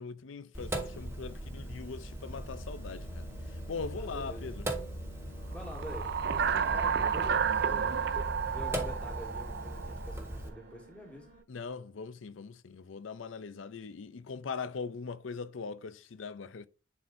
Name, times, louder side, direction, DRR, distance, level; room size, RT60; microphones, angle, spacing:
voice 1, 0.0-4.7 11.5-16.7, left 5 dB, 80° left, 0.5 m, -41 dB
Sink (filling or washing), 0.5-10.5, right 1 dB, 15° right, 1.3 m, -39 dB
sound 1, 0.7-11.4, equal, 35° left, 3.4 m, -52 dB
voice 2, 3.9-4.5 5.5-8.0 8.4-11.3, equal, 5° left, 1.6 m, -46 dB
sound 2, 5.6-10.3, right 7 dB, 60° right, 0.5 m, -31 dB
11.0 x 4.3 x 2.6 m
head